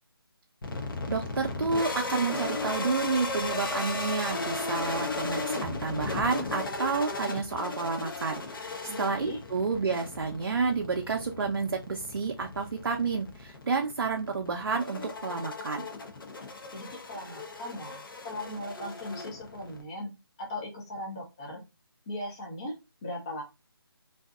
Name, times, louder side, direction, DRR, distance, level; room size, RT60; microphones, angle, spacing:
sound 1, 0.6-19.8, left 3 dB, 60° left, 0.7 m, -36 dB
voice 1, 1.1-15.9, right 4 dB, 65° right, 2 dB, 0.5 m, -30 dB
voice 2, 8.9-9.4 16.7-20.1 20.4-21.6 22.1-23.4, left 1 dB, 15° left, -2 dB, 0.4 m, -38 dB
2.6 x 2.3 x 2.3 m, 0.26 s
figure-of-eight pair, 160°, 13 cm